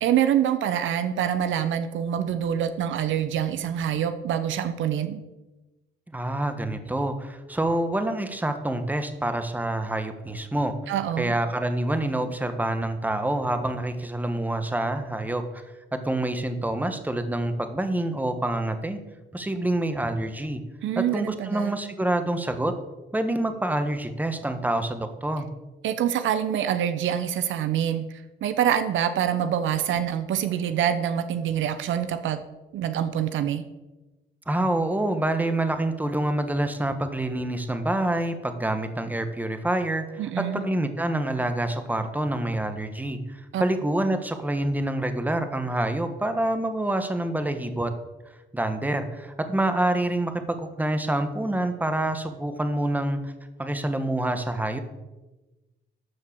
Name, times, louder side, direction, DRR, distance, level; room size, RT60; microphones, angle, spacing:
voice 1, 0.0-5.2 10.9-11.3 20.8-21.7 25.8-32.4 32.7-33.6 40.2-40.6 43.5-43.6, right 9 dB, 75° right, 11 dB, 0.7 m, -25 dB
voice 2, 6.1-10.7 11.2-15.6 16.0-19.0 19.3-20.6 20.9-22.7 23.1-25.5 34.5-47.9 48.5-53.3 53.6-54.8, right 1 dB, 10° right, 8 dB, 1.2 m, -27 dB
13.0 x 4.5 x 7.4 m, 1.1 s
cardioid pair, 90°, 20 cm